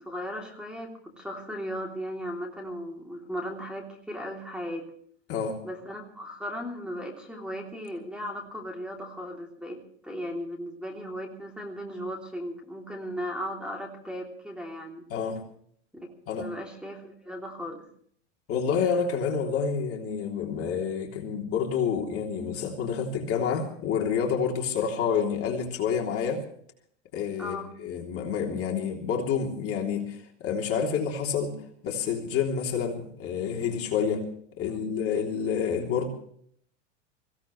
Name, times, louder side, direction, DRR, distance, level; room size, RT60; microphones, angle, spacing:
voice 1, 0.0-4.9 5.6-15.1 15.9-16.1 16.4-17.9 27.4-27.8 34.7-34.9, equal, ahead, 0 dB, 3.2 m, -37 dB
voice 2, 5.3-5.6 15.1-15.4 16.3-16.5 18.5-26.4 27.1-31.6 31.8-34.3 34.6-36.1, left 6 dB, 40° left, 0 dB, 3.3 m, -28 dB
24.0 x 16.5 x 3.3 m, 0.62 s
hypercardioid pair, 115°, 37 cm